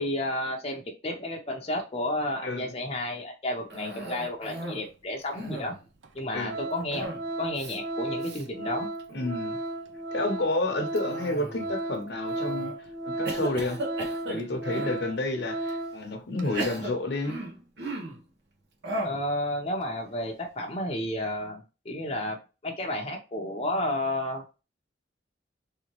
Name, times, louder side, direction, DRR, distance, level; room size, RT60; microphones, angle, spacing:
voice 1, 0.0-5.7 6.1-7.1 7.4-8.9 19.0-22.4 22.6-24.4, left 1 dB, 30° left, 0.6 m, -31 dB
voice 2, 2.4-2.7 6.3-6.6 9.1-9.6 10.1-13.8 14.3-17.4, left 2 dB, 65° left, 0.8 m, -30 dB
Cough, 3.7-4.9 5.2-5.9 6.9-7.3 7.5-7.8 8.2-8.4 9.0-9.4 11.0-11.7 12.3-12.7 13.2-15.0 15.7-15.8 16.4-18.2 18.8-19.3, right 1 dB, 70° right, 0.9 m, -36 dB
Organ, 5.4-5.5 6.0-6.2 6.5-16.0 16.4-16.5, right 2 dB, 90° right, 0.6 m, -35 dB
3.4 x 2.9 x 3.0 m
head